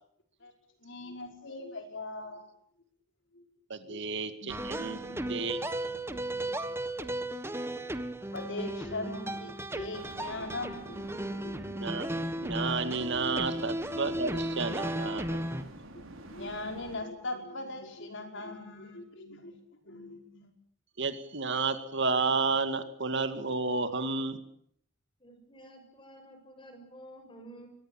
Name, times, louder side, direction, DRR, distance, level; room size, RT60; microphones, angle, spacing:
voice 1, 0.8-2.5 3.3-3.4 3.9-4.0 4.4-6.7 6.9-7.1 8.3-11.5 16.3-19.5 19.8-20.5, left 2 dB, 60° left, 5 dB, 5.2 m, -41 dB
voice 2, 3.7-5.0 5.3-5.6 11.8-12.1 12.4-15.4 21.0-24.4, right 4 dB, 60° right, 10 dB, 2.2 m, -31 dB
sound 1, 4.5-15.6, right 1 dB, 10° right, 1.4 m, -35 dB
sound 2, 10.0-17.0, right 1 dB, 75° right, 5.7 m, -47 dB
voice 3, 25.2-27.7, right 1 dB, 25° left, 6 dB, 6.8 m, -51 dB
24.0 x 20.5 x 9.2 m, 0.68 s
head